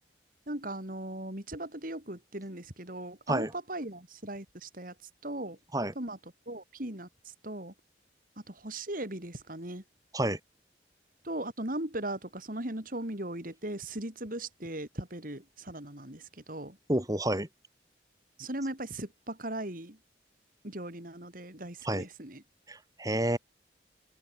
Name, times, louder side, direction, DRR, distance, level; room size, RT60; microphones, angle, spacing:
voice 1, 0.5-4.9 5.2-5.6 6.0-6.2 6.5-7.7 8.5-9.8 11.2-16.8 18.4-20.0 20.6-22.4, right 1 dB, 50° right, 4.3 m, -38 dB
voice 2, 16.9-17.5 21.8-22.0 22.7-23.4, right 1 dB, 20° right, 4.3 m, -29 dB
head